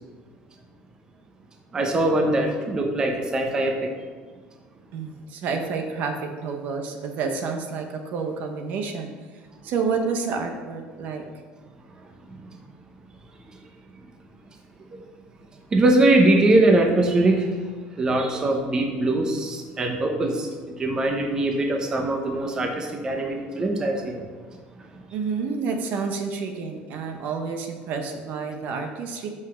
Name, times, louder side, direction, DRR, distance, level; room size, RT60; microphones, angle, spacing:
voice 1, 1.7-3.9 14.9-15.0 15.7-17.6 18.0-24.3, right 2 dB, 20° right, 3 dB, 0.9 m, -22 dB
voice 2, 4.9-9.1 9.6-11.2 25.1-29.3, right 5 dB, 60° right, 4 dB, 0.9 m, -29 dB
5.9 x 5.4 x 6.1 m, 1.5 s
cardioid pair, 145°, 3 cm